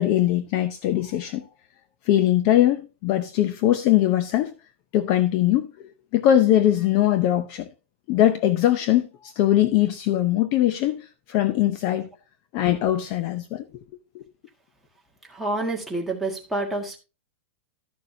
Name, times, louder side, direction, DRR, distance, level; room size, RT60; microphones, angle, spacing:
voice 1, 0.0-1.5 2.1-4.5 4.9-5.7 6.1-7.7 8.1-12.1 12.5-13.6 14.1-14.2, left 12 dB, 35° left, 0.7 m, -21 dB
voice 2, 15.3-17.0, right 2 dB, ahead, 1.7 m, -28 dB
13.0 x 6.7 x 2.8 m
supercardioid pair, 170°, 7 cm